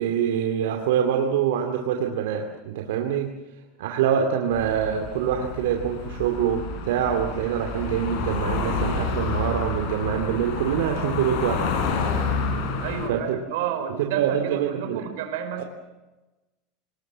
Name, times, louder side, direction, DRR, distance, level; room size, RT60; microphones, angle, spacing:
voice 1, 0.0-3.3 3.8-11.7 13.1-13.4 14.0-15.0 15.6-15.7, right 9 dB, 85° right, 3 dB, 2.4 m, -25 dB
sound 1, 4.5-13.1, left 4 dB, 45° left, 4.5 m, -29 dB
voice 2, 12.8-15.6, right 8 dB, 65° right, 6 dB, 4.8 m, -31 dB
25.0 x 20.5 x 7.4 m, 1.1 s
supercardioid pair, 180°, 0 cm